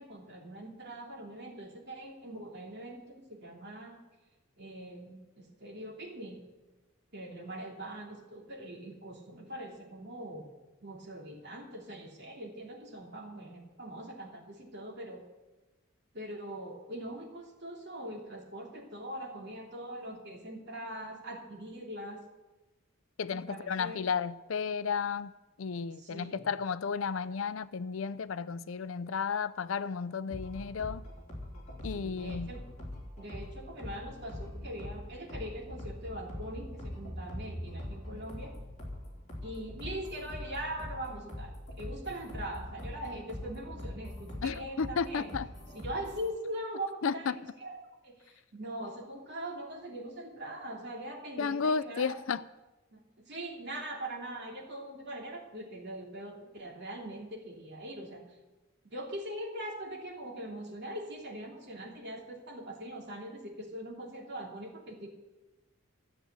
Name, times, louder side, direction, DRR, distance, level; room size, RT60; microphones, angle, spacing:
voice 1, 0.0-4.0 4.6-6.4 7.1-10.5 10.8-15.2 16.1-22.2 23.3-24.0 26.0-26.5 31.9-32.6 33.2-38.5 39.4-45.3 45.7-47.7 48.0-52.2 52.9-53.0 53.3-58.2 58.9-65.1, right 1 dB, 50° right, 2.9 m, -42 dB
voice 2, 23.2-25.3 25.6-31.0 31.8-32.5 44.4-45.5 47.0-47.4 51.4-52.4, left 5 dB, 65° left, 0.5 m, -33 dB
sound 1, 30.3-46.3, left 1 dB, 35° left, 3.7 m, -43 dB
13.5 x 7.7 x 8.1 m
head